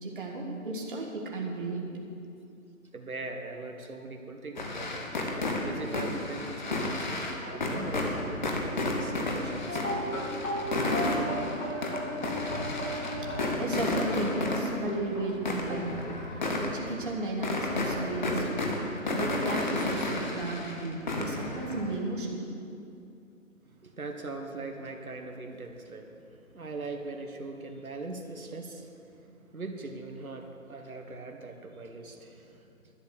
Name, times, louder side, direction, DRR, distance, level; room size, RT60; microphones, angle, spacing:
voice 1, 0.0-1.9 13.2-13.3 13.6-16.2 16.6-18.6 19.1-22.5, right 2 dB, 40° right, -1 dB, 1.6 m, -34 dB
voice 2, 2.9-5.1 5.6-9.9 23.7-32.9, right 3 dB, 85° right, 4 dB, 1.4 m, -41 dB
sound 1, 4.6-22.0, left 2 dB, 35° left, 1.1 m, -32 dB
sound 2, 9.7-15.3, equal, 80° left, 3.2 m, -35 dB
11.5 x 8.3 x 6.9 m, 2.6 s
figure-of-eight pair, 160°, 41 cm